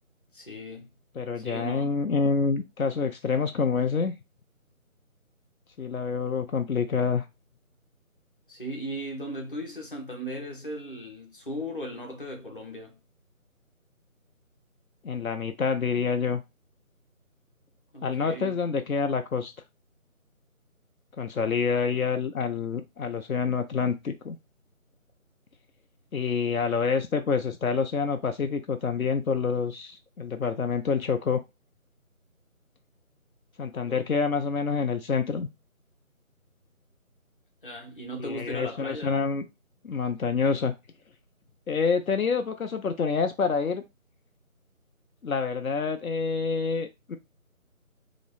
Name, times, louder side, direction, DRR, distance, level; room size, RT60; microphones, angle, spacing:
voice 1, 0.3-0.9 1.4-2.0 8.5-13.0 17.9-18.6 33.9-34.0 37.6-39.2, equal, 40° left, 0.7 m, -37 dB
voice 2, 1.2-4.1 5.8-7.2 15.0-16.4 18.0-19.5 21.2-24.4 26.1-31.4 33.6-35.5 38.2-39.5 39.8-40.7 41.7-43.8 45.2-47.2, left 5 dB, 75° left, 0.6 m, -27 dB
2.9 x 2.0 x 3.9 m
figure-of-eight pair, 165°, 42 cm